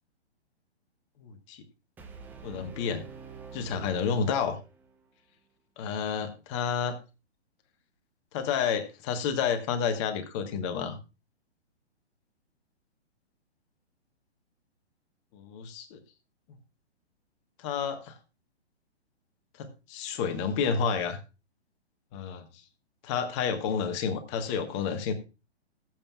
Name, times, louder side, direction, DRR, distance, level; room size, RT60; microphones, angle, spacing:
voice 1, 1.2-1.6 2.4-3.0 3.5-4.6 5.8-7.0 8.3-11.0 15.3-16.0 17.6-18.1 19.6-21.2 22.1-22.5 23.0-25.1, left 6 dB, 25° left, 8 dB, 1.3 m, -30 dB
Brass instrument, 2.0-5.1, right 5 dB, 5° right, 0.6 m, -46 dB
20.5 x 7.5 x 2.4 m, 0.29 s
figure-of-eight pair, 120°, 33 cm